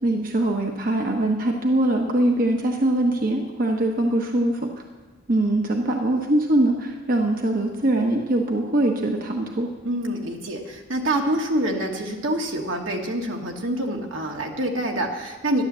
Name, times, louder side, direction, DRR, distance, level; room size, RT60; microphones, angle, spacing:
voice 1, 0.0-4.7 5.3-9.7, right 1 dB, 45° right, 2 dB, 1.1 m, -22 dB
voice 2, 9.8-15.6, right 1 dB, 80° right, 1 dB, 2.1 m, -26 dB
13.0 x 11.0 x 7.5 m, 1.3 s
head